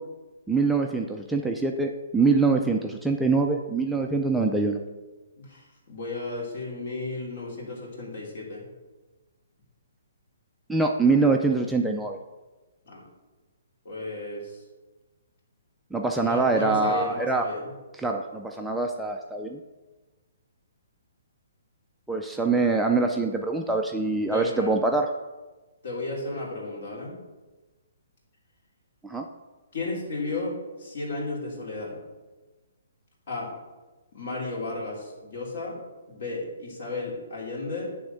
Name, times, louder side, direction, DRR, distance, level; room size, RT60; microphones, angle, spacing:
voice 1, 0.5-4.8 10.7-12.2 15.9-17.4 18.0-19.6 22.1-25.1 29.0-29.3, right 3 dB, 5° right, 1 dB, 0.4 m, -24 dB
voice 2, 5.4-8.7 12.8-13.0 13.8-14.6 16.2-17.7 24.0-24.8 25.8-27.1 29.7-32.0 33.3-33.5 34.1-35.8 36.1-37.9, left 2 dB, 55° left, -2 dB, 3.1 m, -34 dB
9.7 x 3.6 x 6.8 m, 1.2 s
hypercardioid pair, 160°, 0 cm